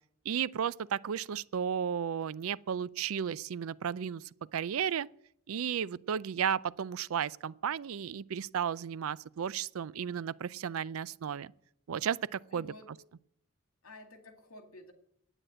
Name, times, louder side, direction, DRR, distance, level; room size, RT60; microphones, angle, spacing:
voice 1, 0.3-4.2 4.5-5.1 5.5-11.5 11.9-12.7, right 8 dB, 75° right, 0.4 m, -34 dB
voice 2, 12.5-12.9 13.8-14.9, left 2 dB, 80° left, 2.2 m, -51 dB
10.0 x 8.9 x 9.0 m
head